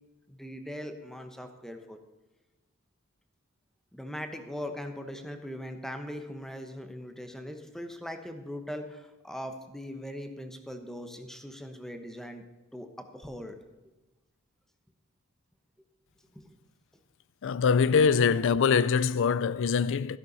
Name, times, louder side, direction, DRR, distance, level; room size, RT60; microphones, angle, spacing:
voice 1, 0.3-2.0 3.9-12.4 12.7-13.6 16.3-16.5, equal, ahead, 1.0 m, -40 dB
voice 2, 17.4-20.2, left 6 dB, 60° left, 0.4 m, -23 dB
13.5 x 12.0 x 4.1 m
head